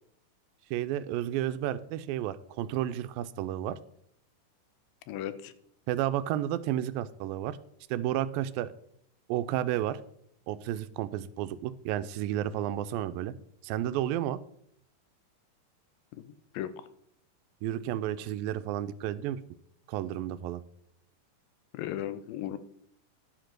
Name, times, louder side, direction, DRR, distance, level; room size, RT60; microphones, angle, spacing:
voice 1, 0.7-3.8 5.9-7.6 7.9-8.7 9.3-10.0 10.5-13.3 13.6-14.4 17.6-19.4 19.9-20.6, right 12 dB, 90° right, 14 dB, 2.3 m, -31 dB
voice 2, 5.1-5.5 16.1-16.2 16.5-16.7 21.7-22.6, left 12 dB, 85° left, 13 dB, 2.3 m, -35 dB
10.5 x 5.1 x 5.9 m, 0.72 s
omnidirectional pair, 4.0 m